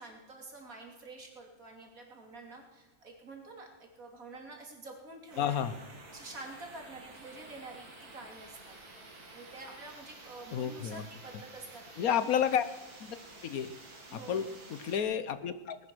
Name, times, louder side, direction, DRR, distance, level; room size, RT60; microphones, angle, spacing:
voice 1, 0.0-5.6 6.1-8.8 9.3-12.0 14.1-14.6, right 2 dB, 65° right, 2 dB, 3.4 m, -48 dB
sound 1, 5.3-15.0, right 2 dB, 85° right, 2.9 m, -51 dB
voice 2, 5.4-5.8 10.5-11.1 12.0-12.6 13.0-13.2 13.4-13.7 14.1-15.8, left 8 dB, 70° left, 13 dB, 1.3 m, -31 dB
19.0 x 10.5 x 6.3 m, 1.1 s
omnidirectional pair, 1.6 m